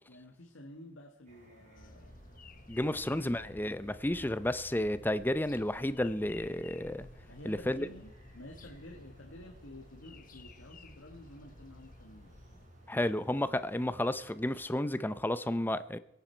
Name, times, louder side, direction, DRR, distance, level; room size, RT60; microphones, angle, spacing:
voice 1, 0.1-2.2 7.3-12.3, left 1 dB, 90° left, 1.6 m, -51 dB
sound 1, 1.3-14.6, right 1 dB, 40° right, 4.1 m, -59 dB
sound 2, 1.8-12.7, left 2 dB, 45° left, 1.1 m, -54 dB
voice 2, 2.7-7.1 7.4-7.9 12.9-16.0, left 1 dB, 10° left, 0.6 m, -32 dB
23.0 x 9.1 x 4.4 m
head